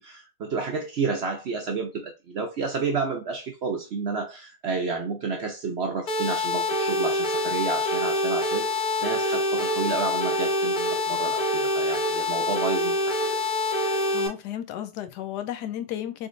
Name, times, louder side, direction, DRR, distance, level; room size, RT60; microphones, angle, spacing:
voice 1, 0.0-8.7 9.0-13.2, right 4 dB, 60° right, 0.7 m, -30 dB
sound 1, 6.1-14.3, left 1 dB, 70° left, 1.8 m, -25 dB
voice 2, 14.1-16.3, left 11 dB, 90° left, 1.2 m, -33 dB
3.8 x 3.6 x 2.5 m
omnidirectional pair, 1.7 m